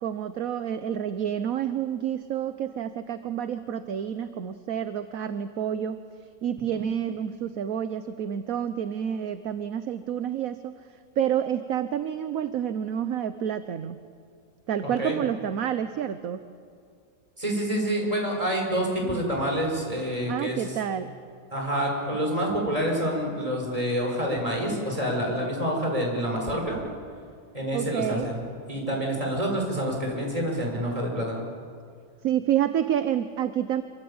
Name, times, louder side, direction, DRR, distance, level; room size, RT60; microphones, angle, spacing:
voice 1, 0.0-6.0 6.4-10.8 11.2-14.0 14.7-16.4 19.0-19.2 20.3-21.1 27.7-28.3 32.2-33.8, right 9 dB, 60° right, 10 dB, 1.2 m, -29 dB
voice 2, 14.8-15.1 17.4-20.6 21.5-26.8 27.5-28.4 28.7-31.4, equal, 20° right, 0 dB, 6.2 m, -27 dB
26.5 x 24.5 x 8.8 m, 2.2 s
omnidirectional pair, 1.8 m